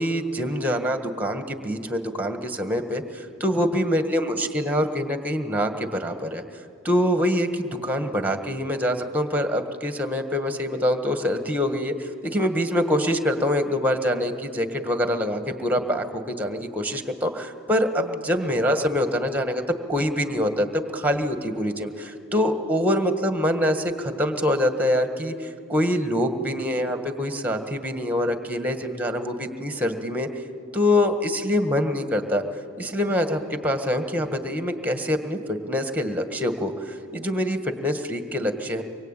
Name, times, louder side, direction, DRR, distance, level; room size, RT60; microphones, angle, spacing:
voice 1, 0.0-6.4 6.8-19.6 19.9-30.3 30.7-32.4 32.8-38.8, left 1 dB, 5° right, 7 dB, 1.6 m, -25 dB
24.5 x 22.5 x 9.0 m, 2.3 s
head